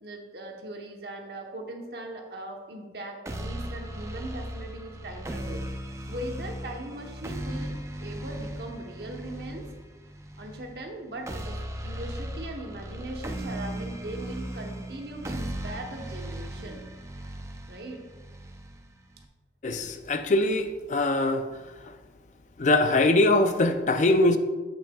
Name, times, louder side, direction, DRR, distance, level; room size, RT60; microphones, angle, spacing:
voice 1, 0.0-5.6 6.1-9.7 10.4-16.8 17.7-18.0, right 1 dB, 65° right, 2 dB, 1.0 m, -39 dB
sound 1, 3.3-19.3, right 1 dB, 15° right, 0.4 m, -37 dB
voice 2, 19.6-21.4 22.6-24.4, left 2 dB, 45° left, 8 dB, 0.4 m, -22 dB
8.0 x 7.3 x 2.3 m, 1.3 s
head